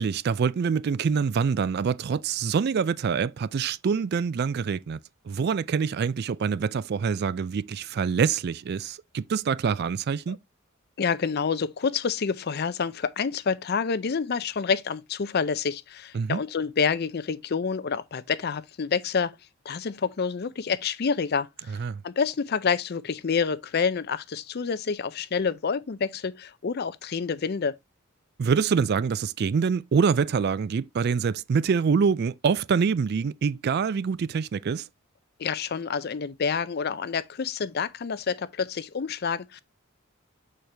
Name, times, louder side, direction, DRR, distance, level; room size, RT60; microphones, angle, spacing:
voice 1, 0.0-5.0 5.3-10.4 16.1-16.4 21.8-22.0 28.4-34.9, right 6 dB, 50° right, 0.3 m, -25 dB
voice 2, 11.0-19.4 19.6-21.8 22.0-27.7 35.4-39.6, left 5 dB, 50° left, 0.5 m, -28 dB
6.5 x 4.4 x 3.3 m
head